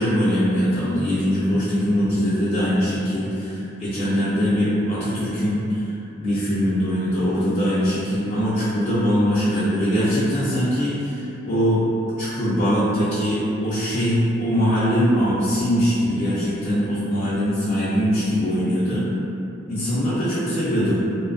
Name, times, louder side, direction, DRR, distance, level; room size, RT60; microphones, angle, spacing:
voice 1, 0.0-5.9 6.2-11.8 12.2-19.0 19.7-21.0, equal, 30° left, -12 dB, 0.3 m, -22 dB
2.5 x 2.2 x 2.4 m, 2.8 s
head